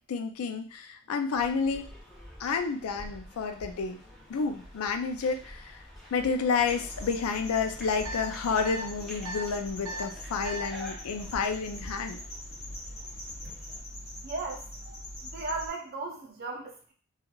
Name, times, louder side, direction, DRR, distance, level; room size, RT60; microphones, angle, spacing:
voice 1, 0.1-1.9 2.4-4.0 4.3-5.8 6.1-12.2, left 5 dB, 90° left, 7 dB, 0.4 m, -30 dB
sound 1, 1.3-13.8, left 1 dB, ahead, 0.7 m, -47 dB
sound 2, 6.7-15.7, left 1 dB, 50° left, 1.2 m, -43 dB
sound 3, 8.0-8.2 8.6-8.8 9.2-9.4 9.8-10.0 10.4-10.6, right 1 dB, 90° right, 0.7 m, -36 dB
voice 2, 14.2-15.0 15.2-16.9, right 3 dB, 45° right, 1 dB, 0.5 m, -37 dB
3.0 x 2.3 x 2.3 m, 0.40 s
head